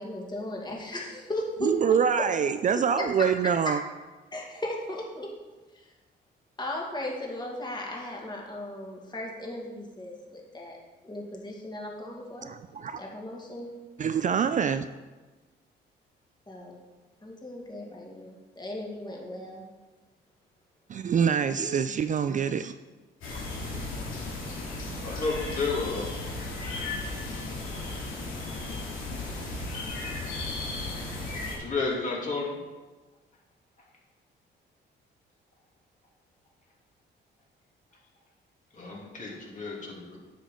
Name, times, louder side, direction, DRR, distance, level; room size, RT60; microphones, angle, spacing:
voice 1, 0.0-2.0 3.2-3.3 4.3-5.3 6.6-10.8 11.0-12.5 13.0-13.7 16.5-16.8 17.2-19.6, left 1 dB, 20° left, -1 dB, 2.1 m, -36 dB
voice 2, 1.6-3.8 12.4-13.0 14.0-14.9 20.9-22.7, right 7 dB, 40° right, 10 dB, 0.4 m, -25 dB
sound 1, 23.2-31.6, left 2 dB, 85° left, 2.5 m, -35 dB
voice 3, 25.0-26.1 31.5-32.6 38.7-40.2, left 3 dB, 40° left, -3 dB, 2.8 m, -31 dB
9.2 x 6.9 x 3.8 m, 1.2 s
cardioid pair, 90°, 20 cm